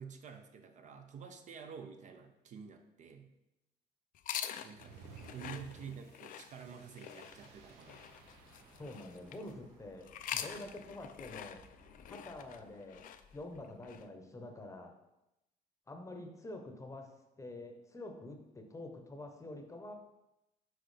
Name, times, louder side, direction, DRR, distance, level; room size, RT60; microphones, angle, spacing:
voice 1, 0.0-3.3 4.6-8.0, right 6 dB, 45° right, 6 dB, 0.5 m, -49 dB
sound 1, 4.1-9.5 10.0-14.0, left 10 dB, 55° left, 0.4 m, -45 dB
sound 2, 4.7-9.6, right 5 dB, 85° right, 0.8 m, -57 dB
sound 3, 7.2-12.6, right 1 dB, 25° right, 1.1 m, -63 dB
voice 2, 8.8-11.6 12.1-15.0 15.9-19.9, left 2 dB, 20° left, 4 dB, 0.8 m, -47 dB
6.3 x 4.5 x 3.3 m, 0.92 s
cardioid pair, 110°, 17 cm